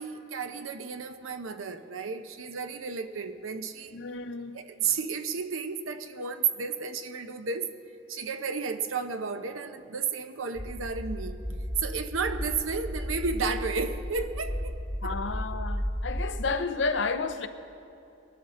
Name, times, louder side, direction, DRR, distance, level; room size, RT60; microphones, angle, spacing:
voice 1, 0.0-3.9 4.5-7.7 8.1-14.7 15.0-15.1, right 5 dB, 85° right, 0.8 m, -32 dB
voice 2, 3.9-4.6 15.0-17.5, left 4 dB, 60° left, 0.6 m, -31 dB
sound 1, 10.5-16.4, equal, 5° right, 0.6 m, -34 dB
21.0 x 11.5 x 3.8 m
head